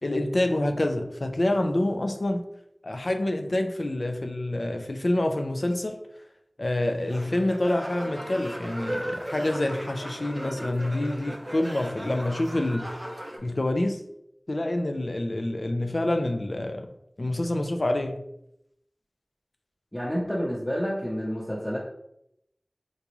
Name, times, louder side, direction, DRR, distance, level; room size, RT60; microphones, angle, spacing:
voice 1, 0.0-2.4 2.8-6.0 6.6-13.1 13.4-14.0 14.5-16.9 17.2-18.2, left 1 dB, 70° left, 0.4 m, -27 dB
sound 1, 7.1-13.4, equal, 25° right, 0.7 m, -37 dB
voice 2, 19.9-21.8, equal, 15° left, 0.8 m, -29 dB
3.9 x 2.3 x 3.0 m
wide cardioid pair, 50°, 0 cm